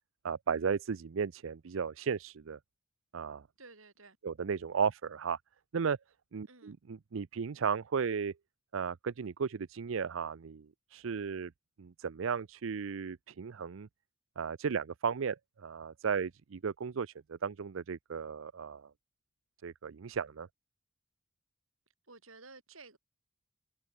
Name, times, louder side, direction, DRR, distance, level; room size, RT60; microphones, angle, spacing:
voice 1, 0.2-2.6 3.1-3.5 4.2-5.4 5.7-6.0 6.3-8.3 8.7-11.5 11.8-13.9 14.4-18.9 19.6-20.5, right 6 dB, 75° right, 0.5 m, -35 dB
voice 2, 3.6-4.2 6.5-6.7 22.1-23.0, right 3 dB, 90° right, 7.0 m, -54 dB
head